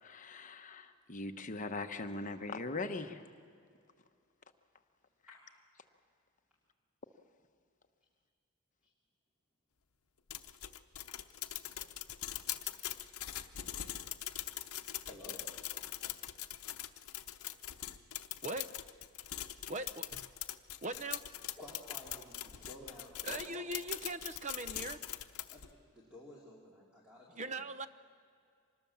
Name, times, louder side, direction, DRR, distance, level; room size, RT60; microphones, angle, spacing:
voice 1, 0.0-3.3, left 3 dB, 35° left, 7 dB, 1.1 m, -40 dB
sound 1, 10.3-25.7, left 12 dB, 75° left, 0.8 m, -42 dB
voice 2, 15.1-15.4 21.6-23.6 25.5-27.7, left 1 dB, 5° right, -6 dB, 3.0 m, -52 dB
voice 3, 19.7-20.3 20.8-21.2 23.2-25.0 27.3-27.9, right 2 dB, 30° right, 13 dB, 0.7 m, -40 dB
25.5 x 20.5 x 7.2 m, 2.3 s
head